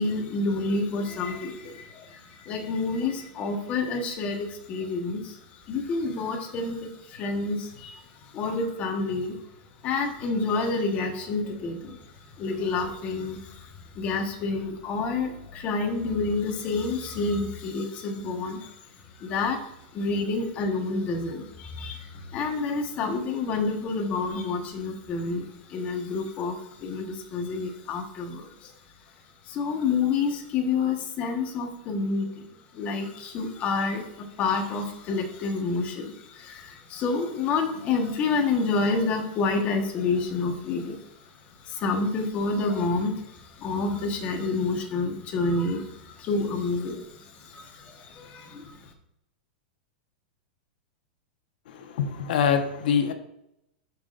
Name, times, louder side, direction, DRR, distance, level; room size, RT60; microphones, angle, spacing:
voice 1, 0.0-9.4 9.8-12.0 12.4-18.8 19.2-28.7 29.4-32.4 32.7-41.1 41.6-48.9, left 3 dB, 30° left, 3 dB, 1.3 m, -29 dB
voice 2, 51.7-53.1, left 7 dB, 65° left, 6 dB, 1.2 m, -24 dB
11.5 x 5.8 x 2.6 m, 0.82 s
supercardioid pair, 160°, 5 cm